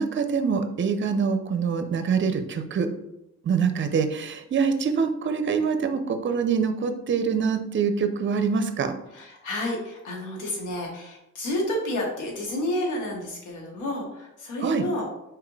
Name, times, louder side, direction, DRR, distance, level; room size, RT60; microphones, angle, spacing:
voice 1, 0.0-2.9 3.4-9.0 14.6-14.8, right 6 dB, 40° right, 8 dB, 0.6 m, -25 dB
voice 2, 9.1-15.1, left 1 dB, 85° left, 0 dB, 1.4 m, -30 dB
4.6 x 3.7 x 3.2 m, 0.88 s
cardioid pair, 90°, 30 cm